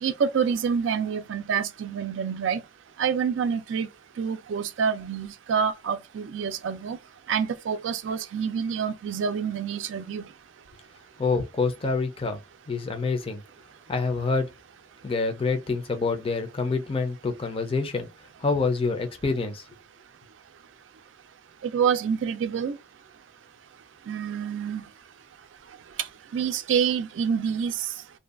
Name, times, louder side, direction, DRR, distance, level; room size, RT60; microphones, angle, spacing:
voice 1, 0.0-2.6 3.0-3.9 4.2-7.0 7.3-10.2 21.6-22.8 24.1-24.8 26.3-27.9, right 7 dB, 80° right, 0.4 m, -27 dB
voice 2, 11.2-12.4 12.7-13.4 13.9-14.5 15.0-18.1 18.4-19.6, left 4 dB, 30° left, 0.5 m, -26 dB
2.6 x 2.3 x 2.4 m
head